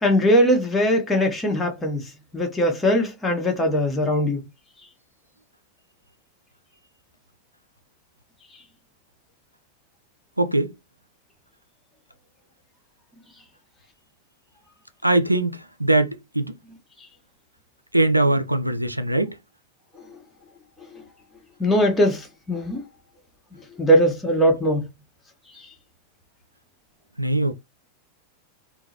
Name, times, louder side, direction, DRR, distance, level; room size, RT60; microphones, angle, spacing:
voice 1, 0.0-4.4 21.6-22.8 23.8-24.9 25.6-25.7, equal, 10° left, 1.1 m, -20 dB
voice 2, 10.4-10.7 15.0-16.5 17.9-19.3 27.2-27.5, right 2 dB, 85° right, 0.4 m, -21 dB
3.7 x 2.2 x 2.8 m
figure-of-eight pair, 90°, 0 cm